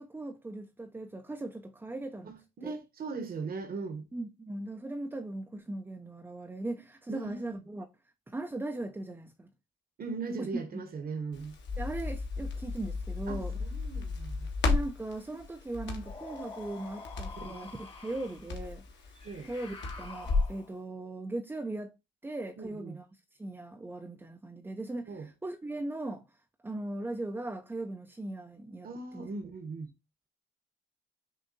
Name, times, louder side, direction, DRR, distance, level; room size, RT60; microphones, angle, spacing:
voice 1, 0.0-2.3 2.6-2.7 4.1-7.9 8.3-9.5 10.4-10.5 11.8-13.6 14.7-19.1 19.5-21.9 22.2-26.2 26.6-29.3, right 2 dB, 10° right, 0.4 m, -39 dB
voice 2, 2.2-4.1 7.1-7.5 10.0-11.6 13.3-14.5 17.4-17.5 19.2-19.5 22.6-23.0 25.1-25.3 28.8-29.9, right 4 dB, 50° right, 1.0 m, -39 dB
Crackle, 11.3-20.6, left 3 dB, 65° left, 1.3 m, -35 dB
sound 1, 16.0-18.5 19.2-20.8, left 3 dB, 25° left, 1.0 m, -47 dB
6.4 x 2.6 x 2.7 m
cardioid pair, 90°, 20 cm